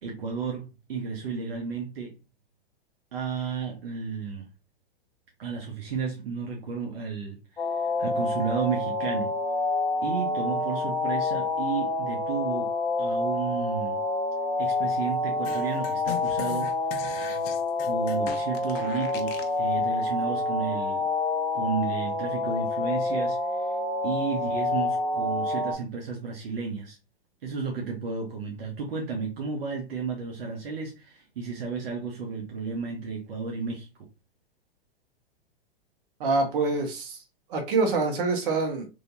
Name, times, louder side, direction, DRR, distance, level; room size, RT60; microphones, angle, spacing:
voice 1, 0.0-2.2 3.1-4.5 5.4-9.3 10.0-12.7 13.0-14.0 14.6-16.8 17.8-21.0 21.5-23.7 24.0-27.0 27.4-33.9, right 5 dB, 75° right, 1.1 m, -33 dB
sound 1, 7.6-25.7, left 2 dB, 10° left, 1.0 m, -28 dB
sound 2, 15.4-19.6, left 8 dB, 40° left, 0.6 m, -39 dB
voice 2, 36.2-37.2 37.5-38.9, right 3 dB, 60° right, 1.4 m, -25 dB
3.3 x 2.9 x 2.7 m
hypercardioid pair, 125°, 30 cm